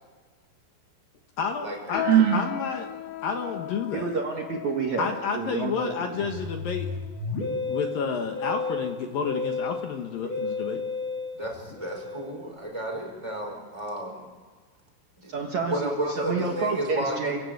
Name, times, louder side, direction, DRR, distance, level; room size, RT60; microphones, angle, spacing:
voice 1, 1.4-2.9 3.2-4.1 5.0-6.9 7.7-10.8, left 5 dB, 65° left, 4 dB, 2.3 m, -30 dB
sound 1, 1.9-7.6 8.3-8.4 9.1-9.4 9.8-10.0 10.7-10.8, left 13 dB, 90° left, 3.7 m, -38 dB
Sigh, 1.9-2.5, right 11 dB, 85° right, 3.9 m, -21 dB
voice 2, 3.9-5.8 15.3-17.4, right 4 dB, 70° right, 1 dB, 1.7 m, -29 dB
Musical instrument, 5.7-12.5, left 3 dB, 40° left, 5.1 m, -33 dB
voice 3, 11.3-14.2 15.2-15.3 15.7-17.4, right 1 dB, 5° right, -1 dB, 5.0 m, -32 dB
28.5 x 16.0 x 9.3 m, 1.4 s
omnidirectional pair, 5.8 m